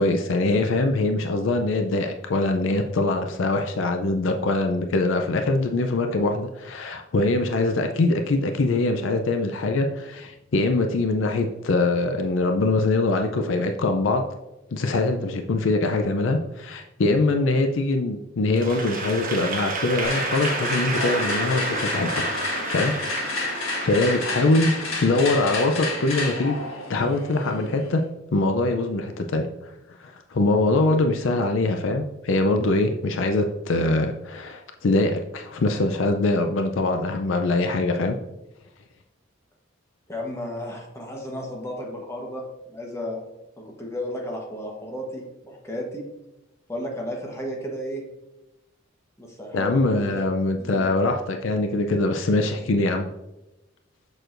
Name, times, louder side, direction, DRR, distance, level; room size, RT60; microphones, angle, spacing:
voice 1, 0.0-14.2 14.7-22.3 22.7-22.9 23.8-26.6 26.9-28.0 28.3-29.5 30.0-38.1 49.5-53.1, left 2 dB, 65° left, 5 dB, 0.5 m, -23 dB
Applause / Crowd, 18.5-24.9, right 3 dB, 45° right, 1.1 m, -31 dB
sound 1, 20.0-28.0, left 2 dB, 85° left, 1.5 m, -30 dB
voice 2, 40.1-43.2 43.6-46.1 46.7-48.1 49.2-50.2 50.6-51.2, equal, 15° left, 0 dB, 1.0 m, -33 dB
6.7 x 6.2 x 2.5 m, 0.96 s
head